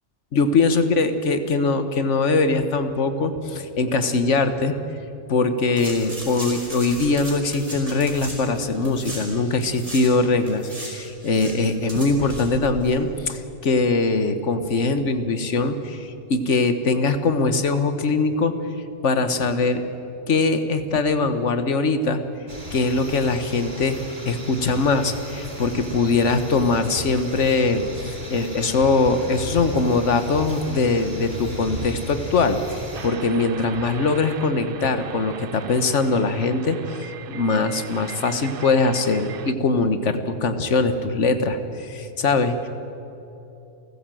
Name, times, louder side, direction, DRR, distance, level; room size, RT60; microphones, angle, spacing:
voice 1, 0.3-4.7 5.3-18.6 19.0-19.8 20.3-22.2 22.7-24.0 24.2-42.7, left 3 dB, 85° left, 9 dB, 1.5 m, -22 dB
sound 1, 5.8-10.1 10.4-13.0 13.2-13.3, right 1 dB, 30° right, 4.9 m, -36 dB
sound 2, 22.5-33.1, right 1 dB, 75° right, 4.6 m, -35 dB
sound 3, 32.9-39.5, right 8 dB, 55° right, 0.8 m, -38 dB
30.0 x 14.0 x 7.7 m, 2.9 s
omnidirectional pair, 1.2 m